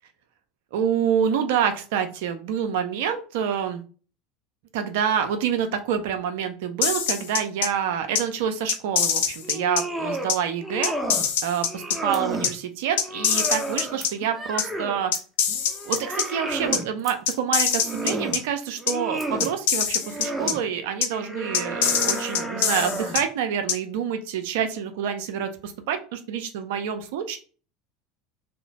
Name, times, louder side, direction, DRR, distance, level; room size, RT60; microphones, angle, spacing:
voice 1, 0.7-3.8 4.7-10.9 11.4-15.1 15.8-27.4, right 8 dB, 65° right, 7 dB, 0.4 m, -27 dB
sound 1, 6.8-7.7 8.1-8.2 8.7-9.8 10.3-10.4 10.8-12.0 12.4-12.5 13.0-14.1 14.6-14.7 15.1-16.2 16.7-16.8 17.3-18.4 18.9-19.0 19.4-20.5 21.0-21.1 21.5-23.2 23.7-23.8, left 8 dB, 70° left, 0.4 m, -23 dB
sound 2, 9.4-10.3 10.6-11.3 11.7-12.5 13.0-15.0 15.5-16.9 17.5-18.4 18.8-19.5 20.0-20.6 21.1-23.3, right 1 dB, 10° right, 0.6 m, -32 dB
sound 3, 12.1-12.3 14.0-14.2 15.1-15.3 15.9-16.1 17.0-17.5 19.1-19.6, left 2 dB, 25° left, 0.8 m, -43 dB
2.8 x 2.0 x 2.6 m, 0.37 s
figure-of-eight pair, 75°, 0 cm